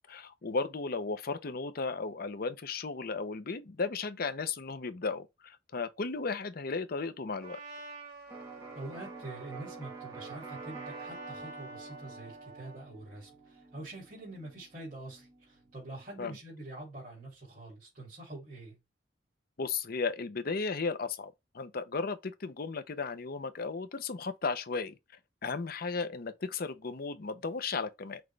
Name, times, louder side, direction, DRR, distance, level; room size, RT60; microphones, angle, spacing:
voice 1, 0.1-7.6 16.2-16.4 19.6-25.0 25.4-28.2, left 4 dB, 55° left, 0.7 m, -35 dB
Trumpet, 7.4-12.9, right 2 dB, 60° right, 2.9 m, -48 dB
Electric guitar, 8.3-16.1, right 4 dB, 20° right, 1.1 m, -48 dB
voice 2, 8.7-18.8, right 2 dB, 45° right, 2.9 m, -45 dB
6.0 x 2.4 x 3.2 m
head